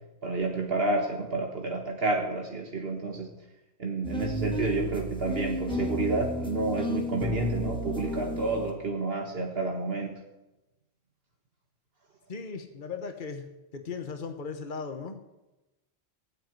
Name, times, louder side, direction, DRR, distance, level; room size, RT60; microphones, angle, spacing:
voice 1, 0.2-3.3 3.8-10.1, right 3 dB, 65° right, 2 dB, 1.8 m, -30 dB
sound 1, 4.0-8.7, equal, 5° left, 2.1 m, -32 dB
voice 2, 12.3-13.4 13.7-15.3, left 5 dB, 50° left, 7 dB, 1.4 m, -37 dB
16.0 x 9.2 x 9.4 m, 1.0 s
omnidirectional pair, 1.1 m